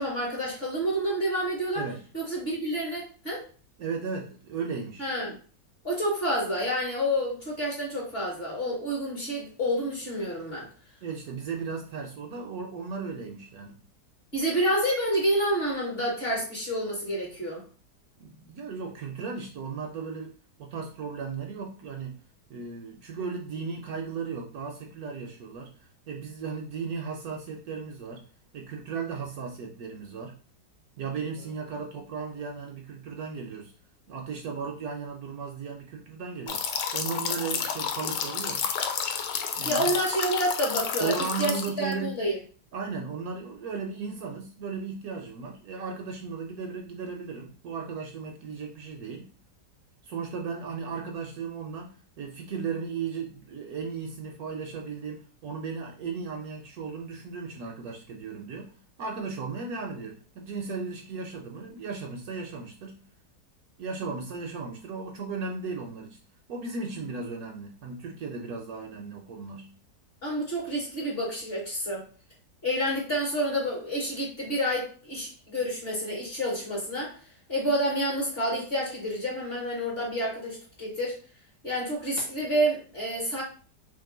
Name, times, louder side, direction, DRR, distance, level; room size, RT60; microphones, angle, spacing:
voice 1, 0.0-1.9 2.1-3.4 5.0-5.4 5.8-10.7 14.3-17.6 39.6-42.4 70.2-72.1 72.6-77.2 77.5-81.1 81.6-83.4, equal, 40° left, -2 dB, 1.1 m, -29 dB
voice 2, 3.8-5.1 11.0-13.8 18.2-22.2 22.5-25.7 26.1-28.3 28.5-30.4 31.0-33.7 34.1-36.6 36.9-38.7 39.6-39.9 41.0-42.2 42.7-49.3 50.0-58.7 59.0-63.0 63.8-66.2 66.5-69.7, right 5 dB, 70° right, 2 dB, 0.9 m, -36 dB
sound 1, 36.5-41.9, left 7 dB, 85° left, 1.2 m, -30 dB
2.9 x 2.5 x 3.7 m, 0.40 s
omnidirectional pair, 1.8 m